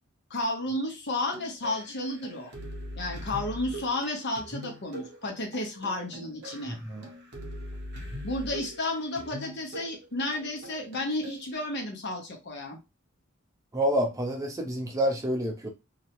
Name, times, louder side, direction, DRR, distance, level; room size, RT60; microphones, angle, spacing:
voice 1, 0.3-2.5 3.0-6.8 8.2-12.8, left 2 dB, 55° left, 2 dB, 0.7 m, -32 dB
sound 1, 1.3-11.5, equal, 50° right, 0.8 m, -42 dB
voice 2, 13.7-15.7, equal, 15° right, 1 dB, 0.5 m, -28 dB
2.4 x 2.0 x 2.8 m, 0.25 s
head